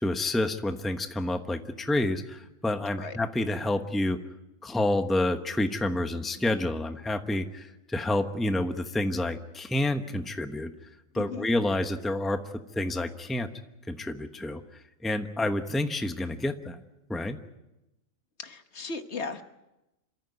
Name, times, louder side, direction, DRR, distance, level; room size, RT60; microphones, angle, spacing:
voice 1, 0.0-4.2 4.6-10.7 11.1-12.4 12.7-13.5 13.9-14.6 15.0-16.8 17.1-17.4, left 1 dB, ahead, 7 dB, 1.0 m, -28 dB
voice 2, 11.1-11.5 18.4-19.4, left 4 dB, 60° left, 8 dB, 1.4 m, -36 dB
27.5 x 14.0 x 9.5 m, 0.97 s
omnidirectional pair, 1.3 m